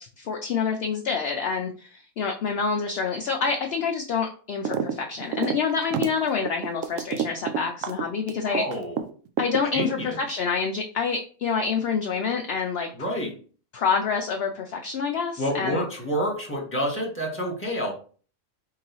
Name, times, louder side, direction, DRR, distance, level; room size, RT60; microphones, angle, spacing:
voice 1, 0.2-8.6 9.4-12.9 13.7-15.9, left 5 dB, 65° left, 3 dB, 0.6 m, -27 dB
sound 1, 4.7-4.9 5.2-9.0 9.4-10.3, right 8 dB, 70° right, 0.9 m, -28 dB
voice 2, 8.4-9.1 9.7-10.2 13.0-13.3 15.4-17.9, equal, 10° left, -1 dB, 1.2 m, -28 dB
4.6 x 3.8 x 3.0 m, 0.41 s
omnidirectional pair, 1.5 m